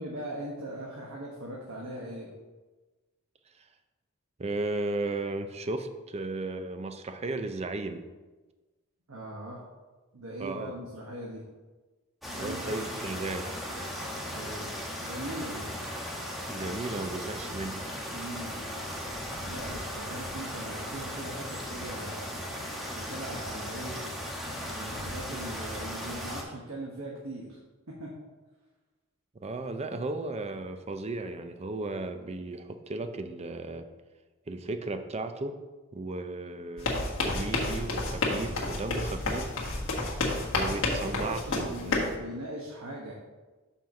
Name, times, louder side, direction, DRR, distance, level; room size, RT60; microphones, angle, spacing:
voice 1, 0.0-2.3 9.1-9.6 10.1-11.4 12.4-13.1 14.3-15.7 18.1-18.6 19.4-22.4 22.9-24.0 24.6-27.6 27.9-28.1 40.6-43.1, right 1 dB, 70° right, -3 dB, 1.2 m, -40 dB
voice 2, 4.4-8.0 10.4-10.8 12.3-13.6 16.5-17.9 29.3-33.9 34.5-35.6 35.9-39.5 40.5-42.1, right 2 dB, 30° right, 8 dB, 0.5 m, -35 dB
sound 1, 12.2-26.4, equal, ahead, 1.1 m, -37 dB
sound 2, 36.8-42.2, left 2 dB, 65° left, 1.4 m, -30 dB
5.7 x 4.5 x 6.3 m, 1.2 s
head